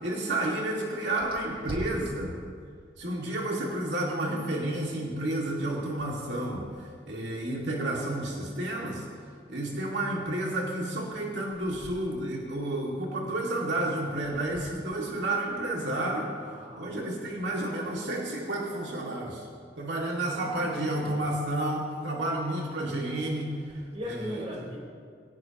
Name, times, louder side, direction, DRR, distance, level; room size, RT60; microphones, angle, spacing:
voice 1, 0.0-2.4 3.0-9.1 9.5-16.3 16.7-19.5 19.8-23.8 24.1-24.4, right 1 dB, 80° right, -3 dB, 2.2 m, -31 dB
voice 2, 1.6-2.1 11.6-11.7 16.3-17.4 20.5-21.3 23.9-24.8, equal, 35° right, -3 dB, 4.1 m, -38 dB
23.0 x 18.0 x 3.0 m, 2.1 s
head